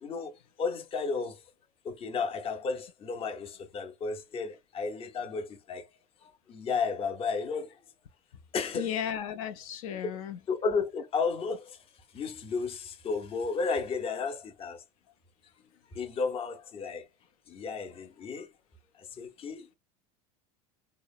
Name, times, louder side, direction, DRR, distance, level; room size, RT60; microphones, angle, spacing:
voice 1, 0.0-1.4 1.8-5.9 6.2-7.8 8.5-9.0 10.5-11.8 12.1-14.8 15.9-17.1 17.5-18.5 19.0-19.7, left 4 dB, 30° left, 0.6 m, -33 dB
voice 2, 8.8-10.4, left 9 dB, 75° left, 0.4 m, -34 dB
2.8 x 2.0 x 2.2 m
hypercardioid pair, 100°, 18 cm